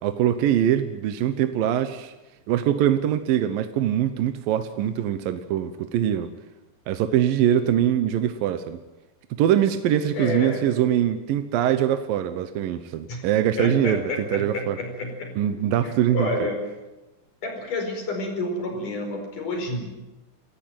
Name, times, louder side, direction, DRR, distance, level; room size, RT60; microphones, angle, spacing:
voice 1, 0.0-2.1 2.5-6.3 6.9-8.8 9.4-14.8 15.4-16.3, right 10 dB, 70° right, 9 dB, 2.5 m, -23 dB
voice 2, 10.1-10.8 13.1-13.2 13.6-15.3 15.8-16.6 17.4-19.9, left 2 dB, 55° left, 4 dB, 6.2 m, -29 dB
28.0 x 15.0 x 9.3 m, 1.1 s
omnidirectional pair, 4.6 m